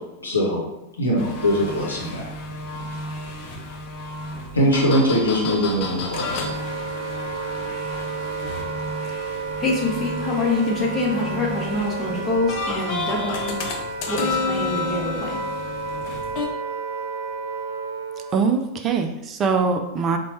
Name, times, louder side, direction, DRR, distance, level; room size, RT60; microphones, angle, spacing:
voice 1, 0.2-0.7 1.0-2.2 2.9-3.0 4.5-6.2, equal, 75° left, -2 dB, 0.8 m, -21 dB
sound 1, 1.2-16.5, left 3 dB, 45° left, 0.6 m, -31 dB
Wind instrument woodwind instrument, 5.9-18.5, right 4 dB, 55° right, 0.7 m, -32 dB
voice 2, 9.6-13.5 14.1-15.4, left 2 dB, 25° left, -3 dB, 0.9 m, -25 dB
voice 3, 18.3-20.2, right 5 dB, 25° right, 6 dB, 0.4 m, -22 dB
4.1 x 2.3 x 4.2 m, 0.91 s
figure-of-eight pair, 90°, 0 cm